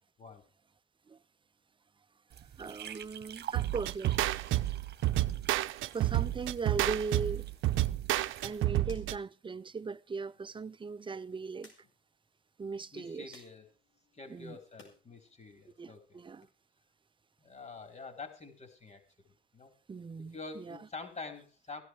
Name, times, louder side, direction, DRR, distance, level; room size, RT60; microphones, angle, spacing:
sound 1, 2.3-8.6, right 10 dB, 55° right, 1.2 m, -49 dB
voice 1, 2.6-4.2 5.9-7.5 8.4-11.7 12.6-13.4 14.3-14.6 15.8-16.5 19.9-20.9, right 4 dB, 25° right, 0.6 m, -39 dB
sound 2, 3.5-9.2, right 15 dB, 85° right, 0.6 m, -30 dB
sound 3, 9.3-15.0 15.4-16.5, left 3 dB, 75° left, 5.3 m, -64 dB
voice 2, 12.9-13.7 14.1-16.2 17.4-19.0 19.5-19.7 20.3-21.8, left 4 dB, 35° left, 4.6 m, -46 dB
16.0 x 12.0 x 4.8 m
cardioid pair, 90°, 20 cm